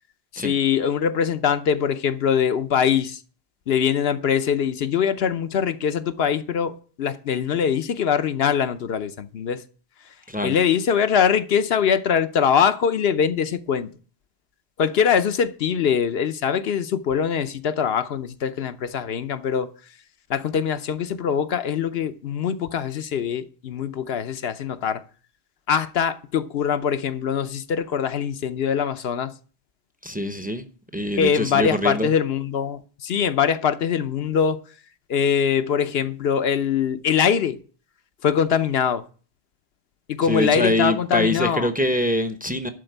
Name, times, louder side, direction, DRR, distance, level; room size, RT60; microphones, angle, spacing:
voice 1, 0.3-3.2 3.7-9.6 10.4-13.9 14.8-19.7 20.3-25.0 25.7-29.3 31.2-34.6 35.1-37.6 38.2-39.0 40.1-41.7, left 7 dB, 65° left, 0.9 m, -23 dB
voice 2, 30.0-30.7 30.9-32.1 40.2-42.7, left 1 dB, 10° right, 0.7 m, -24 dB
11.5 x 4.3 x 8.0 m
omnidirectional pair, 1.1 m